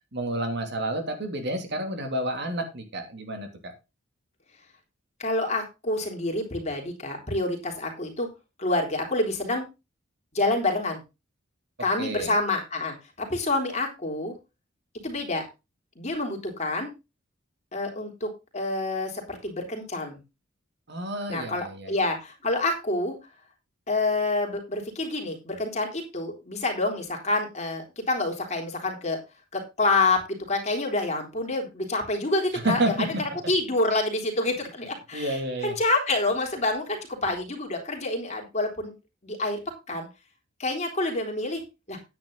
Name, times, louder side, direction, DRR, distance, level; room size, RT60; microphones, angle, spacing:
voice 1, 0.1-3.7 12.0-12.4 20.9-22.0 32.5-33.2 35.1-35.7, right 1 dB, 60° right, 5 dB, 2.9 m, -30 dB
voice 2, 5.2-8.3 8.6-9.7 10.3-11.0 11.8-14.3 15.0-15.5 16.0-16.9 17.7-20.2 21.3-23.2 23.9-29.2 29.5-30.2 30.5-38.9 39.2-39.6 39.9-40.1 40.6-41.6 41.9-42.0, left 2 dB, 35° left, 2 dB, 3.6 m, -27 dB
9.9 x 9.7 x 3.9 m, 0.26 s
head